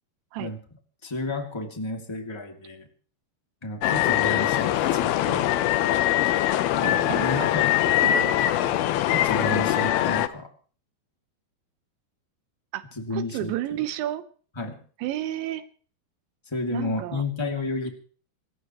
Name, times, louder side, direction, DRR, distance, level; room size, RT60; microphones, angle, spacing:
voice 1, 1.0-2.9 3.6-5.5 6.8-7.7 9.1-10.5 12.9-13.5 14.5-14.8 16.4-17.9, left 2 dB, 10° left, 3 dB, 1.6 m, -31 dB
sound 1, 3.8-10.3, left 13 dB, 75° left, 2.5 m, -22 dB
voice 2, 6.8-7.5 7.8-8.3 12.7-12.8 13.1-14.2 15.0-15.6 16.7-17.2, right 13 dB, 85° right, 11 dB, 3.3 m, -32 dB
27.0 x 14.5 x 3.2 m, 0.43 s
omnidirectional pair, 5.1 m